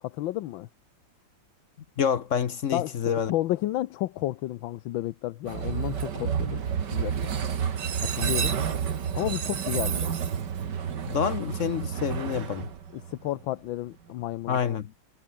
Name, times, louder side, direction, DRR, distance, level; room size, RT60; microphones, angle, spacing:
voice 1, 0.0-0.7 2.7-6.6 6.9-7.3 8.0-8.5 9.1-10.1 12.9-14.6, left 15 dB, 80° left, 1.4 m, -31 dB
voice 2, 2.0-3.3 11.1-12.7 14.5-14.9, left 7 dB, 55° left, 0.9 m, -27 dB
Train, 5.5-13.4, right 7 dB, 60° right, 2.2 m, -30 dB
omnidirectional pair, 2.1 m